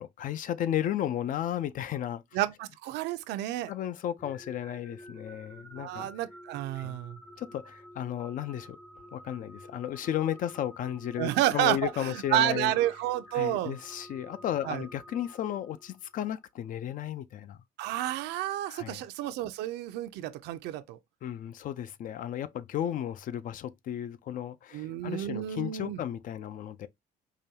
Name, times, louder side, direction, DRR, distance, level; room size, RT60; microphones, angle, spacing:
voice 1, 0.0-2.2 3.7-6.1 6.7-7.0 7.4-8.8 9.1-12.7 13.3-17.6 18.7-19.0 21.2-26.9, left 11 dB, 55° left, 0.4 m, -34 dB
voice 2, 2.3-3.7 5.8-7.2 11.2-13.7 14.7-14.8 17.8-21.0 24.7-26.0, right 14 dB, 85° right, 0.5 m, -30 dB
sound 1, 4.2-16.2, equal, 10° left, 0.7 m, -50 dB
4.9 x 2.3 x 2.8 m
cardioid pair, 110°, 17 cm